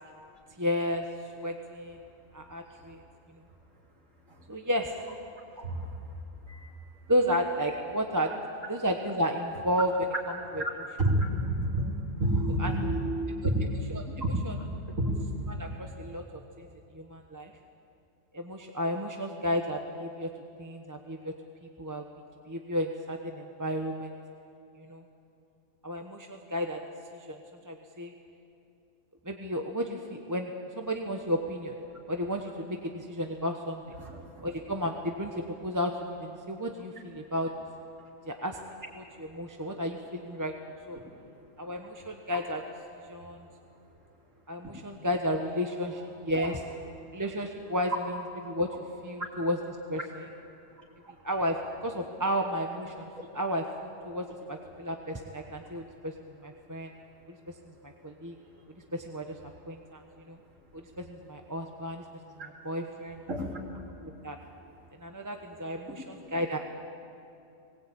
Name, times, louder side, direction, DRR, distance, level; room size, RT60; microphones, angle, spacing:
voice 1, 0.6-1.0 1.4-2.0 2.3-3.0 4.5-4.9 5.6-5.7 7.1-8.3 8.7-9.9 10.6-10.7 12.6-12.7 13.9-14.0 14.5-14.6 15.5-16.2 16.6-16.7 16.9-17.5 18.3-20.3 20.6-21.3 21.8-22.0 22.5-24.1 24.8-25.0 25.8-26.8 27.1-27.4 27.6-28.1 29.2-31.8 32.1-33.8 34.4-37.5 38.3-40.5 40.9-41.0 41.6-42.6 43.1-43.5 44.5-46.6 47.1-47.9 48.4-48.7 49.0-49.6 49.9-50.0 51.2-51.6 51.8-53.1 53.3-56.1 56.4-56.9 57.3-57.4 58.0-58.3 58.9-59.3 59.7-60.0 60.3-60.4 61.0-62.0 62.6-63.2 64.0-64.4 65.0-66.6, equal, 15° right, 3 dB, 1.0 m, -32 dB
voice 2, 5.6-6.0 6.5-6.7 10.5-10.7 11.0-13.6 14.0-14.7 15.0-15.3 34.0-34.4 44.6-44.7 46.4-46.5 49.2-49.3 50.7-51.2 53.2-53.3 58.5-58.8 62.4-62.5 63.3-63.6 65.9-66.0, right 1 dB, 90° right, -2 dB, 3.7 m, -31 dB
20.5 x 19.5 x 8.6 m, 2.6 s
omnidirectional pair, 1.3 m